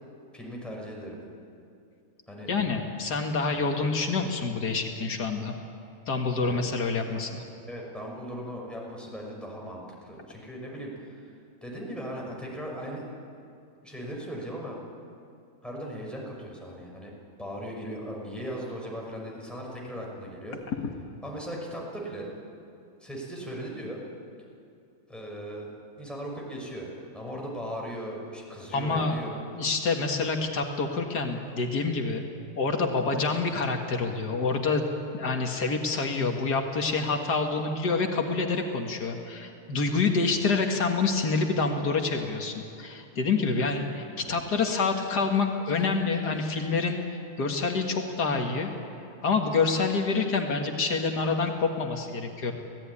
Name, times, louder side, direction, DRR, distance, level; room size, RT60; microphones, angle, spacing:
voice 1, 0.3-1.2 2.3-2.5 3.5-3.8 6.4-6.7 7.7-11.3 11.6-13.0 13.8-14.8 15.6-17.1 17.4-20.6 21.2-22.3 23.0-24.0 25.1-26.9 27.1-29.4, equal, ahead, -2 dB, 6.0 m, -38 dB
voice 2, 2.5-5.5 6.1-7.4 28.7-29.2 29.6-32.3 32.6-34.8 35.1-47.0 47.4-48.7 49.2-52.5, left 4 dB, 85° left, 3 dB, 2.3 m, -27 dB
26.0 x 18.0 x 9.9 m, 2.6 s
omnidirectional pair, 1.7 m